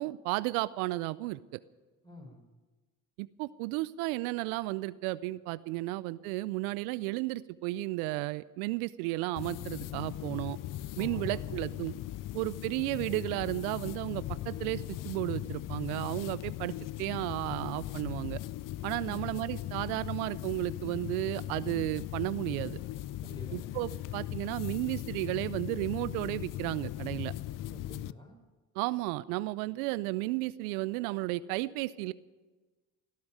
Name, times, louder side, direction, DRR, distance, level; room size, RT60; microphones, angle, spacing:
voice 1, 0.0-1.6 3.2-10.6 11.0-11.9 12.3-18.4 18.8-22.8 23.5-27.3 28.8-32.1, right 19 dB, 85° right, 18 dB, 0.5 m, -33 dB
voice 2, 2.0-2.5 5.4-5.5 5.8-6.0 10.9-11.9 19.0-19.4 23.2-23.8 27.7-28.4, left 1 dB, 10° left, 2 dB, 5.6 m, -49 dB
sound 1, 9.4-28.1, left 14 dB, 50° left, 0.5 m, -39 dB
18.0 x 8.5 x 9.1 m, 1.3 s
hypercardioid pair, 55°, 42 cm